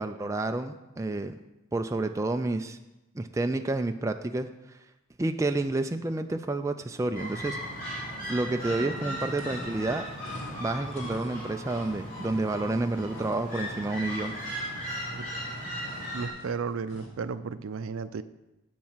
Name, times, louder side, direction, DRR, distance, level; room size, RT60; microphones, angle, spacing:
voice 1, 0.0-1.3 1.7-2.8 3.1-4.5 5.2-7.6 8.3-10.1 10.6-14.4, right 2 dB, 15° right, 6 dB, 0.3 m, -29 dB
sound 1, 7.1-16.3, equal, 40° left, 3.1 m, -37 dB
sound 2, 9.1-17.2, equal, 70° left, 2.0 m, -46 dB
voice 2, 16.1-18.2, right 5 dB, 75° right, 13 dB, 0.4 m, -34 dB
8.2 x 7.5 x 5.7 m, 0.99 s
head